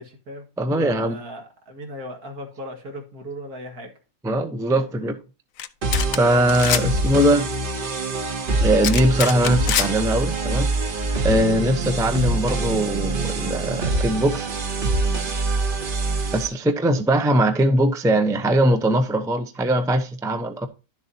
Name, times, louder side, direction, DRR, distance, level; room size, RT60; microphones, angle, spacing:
voice 1, 0.0-4.0, equal, 70° right, 2.3 m, -37 dB
voice 2, 0.6-1.2 4.2-5.2 6.2-7.5 8.6-10.7 11.2-14.5 16.3-20.7, right 1 dB, 5° right, 0.5 m, -21 dB
sound 1, 5.6-5.7 5.9-6.2 6.5-6.8 8.8-9.9, left 11 dB, 65° left, 0.9 m, -24 dB
sound 2, 5.8-16.5, right 3 dB, 40° right, 1.1 m, -25 dB
11.5 x 7.1 x 2.8 m
omnidirectional pair, 1.6 m